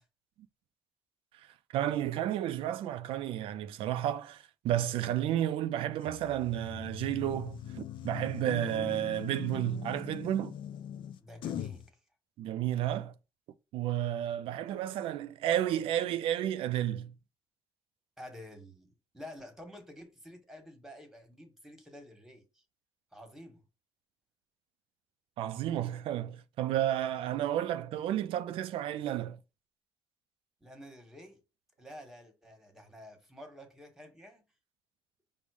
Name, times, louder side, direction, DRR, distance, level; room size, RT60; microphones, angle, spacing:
voice 1, 1.7-10.5 12.4-13.1 13.7-17.1 25.4-29.4, right 12 dB, 85° right, 0.4 m, -32 dB
sound 1, 6.0-11.9, left 9 dB, 65° left, 0.4 m, -41 dB
voice 2, 11.2-12.0 14.2-14.3 18.2-22.6 23.1-23.6 30.6-31.4 31.8-34.4, left 1 dB, 5° right, 1.3 m, -50 dB
5.3 x 2.1 x 4.7 m
cardioid pair, 100°, 9 cm